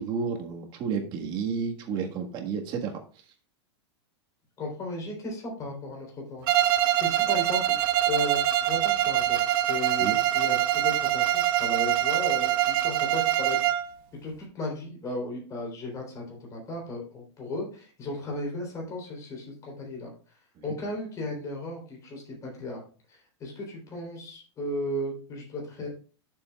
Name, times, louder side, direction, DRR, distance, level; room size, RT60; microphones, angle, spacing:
voice 1, 0.0-3.0 10.0-10.2, right 6 dB, 30° right, 2 dB, 1.6 m, -31 dB
voice 2, 4.6-6.5 7.0-7.7 8.1-13.8 14.2-22.8 23.1-25.9, left 1 dB, 25° left, -1 dB, 3.6 m, -35 dB
Bowed string instrument, 6.5-13.9, right 13 dB, 50° right, 0.8 m, -24 dB
12.0 x 7.0 x 2.4 m, 0.38 s
supercardioid pair, 150°, 14 cm